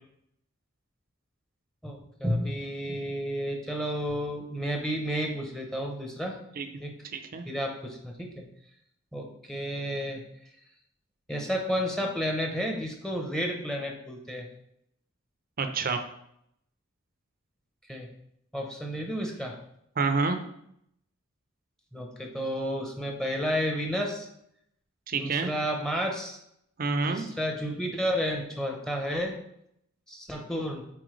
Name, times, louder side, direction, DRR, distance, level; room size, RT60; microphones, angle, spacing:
voice 1, 1.8-6.4 6.8-6.9 7.5-8.4 9.1-10.2 11.3-14.5 17.9-18.1 18.5-19.6 21.9-24.3 25.1-26.4 27.1-29.4 30.1-30.8, equal, 5° left, 2 dB, 0.8 m, -31 dB
voice 2, 7.0-7.4 15.6-16.0 20.0-20.4 25.1-25.5 26.8-27.3, right 4 dB, 45° right, 7 dB, 0.6 m, -28 dB
7.7 x 4.3 x 3.2 m, 0.75 s
head